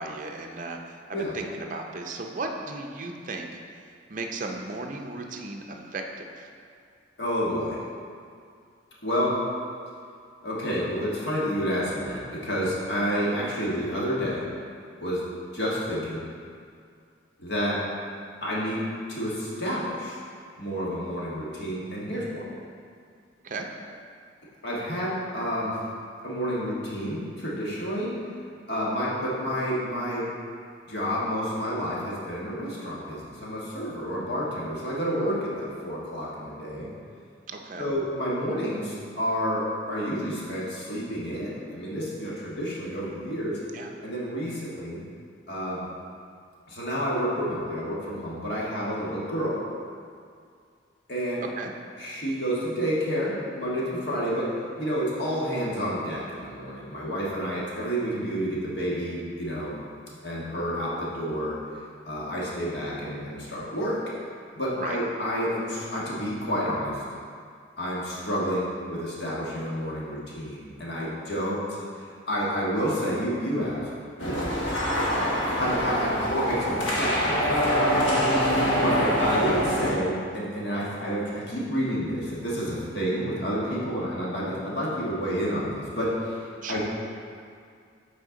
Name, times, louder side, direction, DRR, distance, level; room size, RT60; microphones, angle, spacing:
voice 1, 0.0-3.5 4.1-6.5 23.4-23.7 37.5-37.9 43.7-43.9 51.6-51.7 64.8-65.0 75.0-75.3 78.1-78.3 86.6-86.8, right 3 dB, 45° right, 3 dB, 0.5 m, -36 dB
voice 2, 7.2-7.8 9.0-9.4 10.4-14.5 15.0-15.2 15.5-16.2 17.4-17.8 18.4-20.2 20.6-22.4 24.6-25.8 26.2-28.2 28.7-30.3 30.8-36.9 37.8-43.6 44.0-45.0 45.5-45.9 46.7-49.6 51.1-51.5 52.0-59.8 60.2-61.6 62.0-64.0 64.5-67.0 67.8-73.9 74.2-74.5 75.6-77.5 78.6-86.8, equal, 60° left, -6 dB, 1.5 m, -29 dB
sound 1, 74.2-79.9, equal, 80° left, 1.4 m, -25 dB
8.0 x 4.3 x 3.8 m, 2.3 s
head